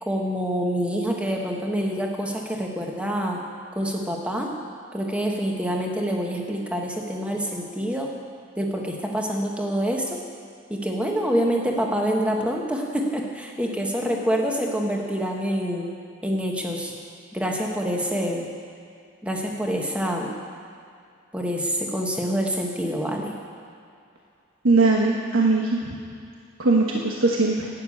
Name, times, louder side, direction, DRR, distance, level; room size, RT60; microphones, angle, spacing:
voice 1, 0.0-3.4 3.7-4.5 4.9-8.1 8.6-10.2 10.7-15.9 16.2-16.9 17.3-18.5 19.2-20.3 21.3-23.3, equal, 5° right, 0 dB, 1.3 m, -26 dB
voice 2, 24.6-25.8 26.6-27.7, right 3 dB, 75° right, -1 dB, 1.2 m, -20 dB
12.5 x 9.0 x 8.6 m, 2.4 s
head